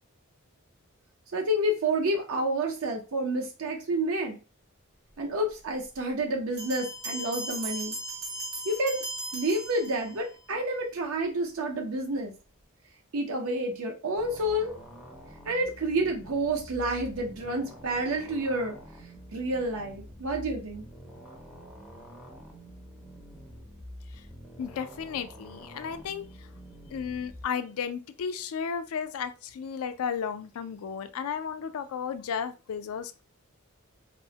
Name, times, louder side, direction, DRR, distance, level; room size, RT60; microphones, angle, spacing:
voice 1, 1.3-4.4 5.2-8.0 8.7-9.0 9.3-12.3 13.1-14.7 15.5-18.8 19.3-20.8, right 1 dB, 70° right, 0.5 m, -29 dB
Bell, 6.6-10.4, right 2 dB, 90° right, 1.2 m, -37 dB
sound 1, 14.2-27.4, equal, 5° right, 0.5 m, -47 dB
voice 2, 24.6-26.2 26.9-33.2, left 7 dB, 75° left, 0.3 m, -34 dB
2.9 x 2.0 x 2.7 m
head